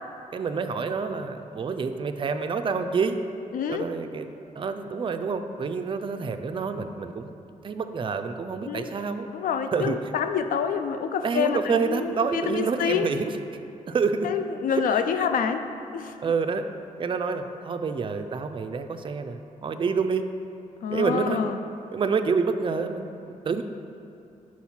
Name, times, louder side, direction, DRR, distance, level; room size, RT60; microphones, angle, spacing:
voice 1, 0.3-3.2 3.7-4.3 4.6-7.3 7.6-9.3 9.7-10.0 11.2-13.3 13.9-14.3 16.2-16.6 17.0-20.2 20.9-21.4 21.9-23.6, right 5 dB, 35° right, 7 dB, 0.4 m, -28 dB
voice 2, 3.5-3.8 8.7-8.9 9.3-13.1 14.2-15.6 15.9-16.1 20.8-21.6, left 7 dB, 80° left, 8 dB, 0.4 m, -27 dB
5.6 x 4.4 x 4.3 m, 2.8 s
cardioid pair, 65°, 14 cm